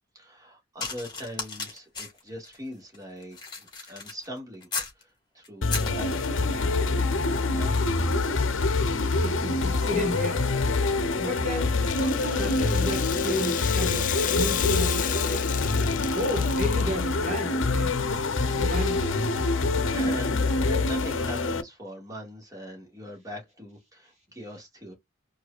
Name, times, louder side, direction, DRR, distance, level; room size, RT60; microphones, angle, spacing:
voice 1, 0.1-4.7 5.0-7.8 19.9-24.9, equal, 20° right, 1.8 m, -41 dB
sound 1, 0.8-5.0 5.4-6.7 7.5-7.7 8.0-17.7 18.4-18.5, left 4 dB, 25° left, 2.0 m, -41 dB
sound 2, 5.6-21.6, left 3 dB, 70° left, 0.7 m, -25 dB
voice 2, 9.2-10.4 11.2-15.5 16.1-17.9 18.5-19.2, left 1 dB, 35° right, 1.7 m, -33 dB
Rattle (instrument), 11.7-17.2, left 13 dB, 40° left, 0.3 m, -33 dB
4.6 x 2.7 x 2.4 m
head